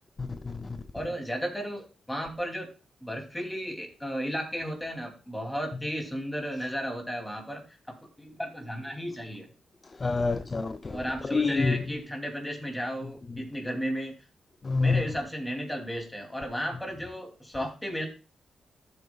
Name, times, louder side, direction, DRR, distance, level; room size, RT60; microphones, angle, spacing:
voice 1, 0.2-0.8 10.0-11.0 11.3-11.8 14.6-15.0, left 4 dB, 30° left, 0.5 m, -27 dB
voice 2, 0.9-2.7 3.0-7.6 7.9-9.5 10.9-14.1 14.8-18.1, equal, 5° left, 2.8 m, -34 dB
12.5 x 8.0 x 2.3 m
wide cardioid pair, 120°, 0 cm